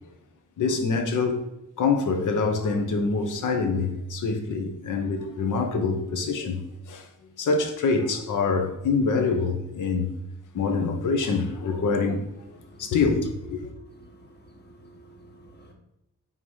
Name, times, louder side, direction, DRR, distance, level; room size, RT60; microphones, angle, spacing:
voice 1, 0.6-1.4 1.8-7.1 7.4-10.2 10.5-12.3 12.8-13.7, left 4 dB, 85° left, 0.9 m, -25 dB
voice 2, 14.2-15.7, right 1 dB, 35° left, 1.2 m, -51 dB
4.7 x 3.7 x 5.4 m
wide cardioid pair, 150°, 30 cm